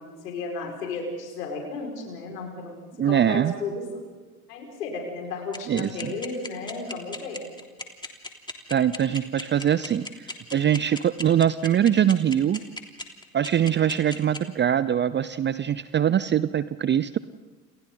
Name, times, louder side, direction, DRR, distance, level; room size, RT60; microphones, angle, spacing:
voice 1, 0.0-4.0 4.5-7.5, left 3 dB, 75° left, 1 dB, 5.6 m, -34 dB
voice 2, 3.0-3.5 5.7-6.1 8.7-10.1 10.5-12.6 13.3-17.2, right 9 dB, 25° right, 17 dB, 0.7 m, -22 dB
sound 1, 5.5-14.4, left 2 dB, 10° left, 3.4 m, -35 dB
29.5 x 28.5 x 4.0 m, 1.4 s
hypercardioid pair, 75°, 48 cm